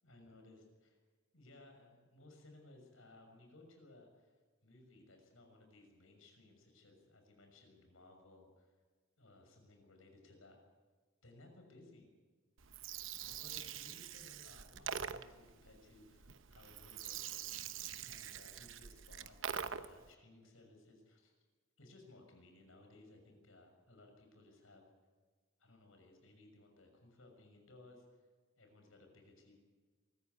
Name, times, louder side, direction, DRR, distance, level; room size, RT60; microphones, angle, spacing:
voice 1, 0.0-1.0 1.3-4.3 4.6-8.7 9.2-10.6 11.2-12.1 13.2-21.3 21.8-24.8 25.6-28.2 28.6-29.6, left 2 dB, 85° left, 4 dB, 6.4 m, -61 dB
Gurgling, 12.6-20.1, right 8 dB, 70° right, 1.0 m, -45 dB
24.0 x 14.5 x 9.7 m, 1.4 s
head